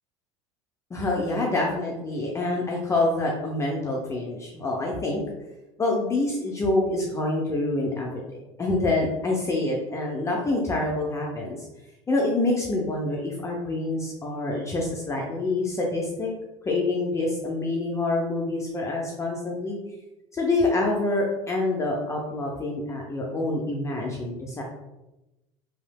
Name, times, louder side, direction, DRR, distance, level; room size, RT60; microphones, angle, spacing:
voice 1, 0.9-5.2 5.8-8.2 8.6-11.7 12.1-16.3 16.6-19.8 20.3-24.6, left 2 dB, 20° left, -2 dB, 0.6 m, -26 dB
3.1 x 2.8 x 2.2 m, 0.98 s
hypercardioid pair, 75°, 15 cm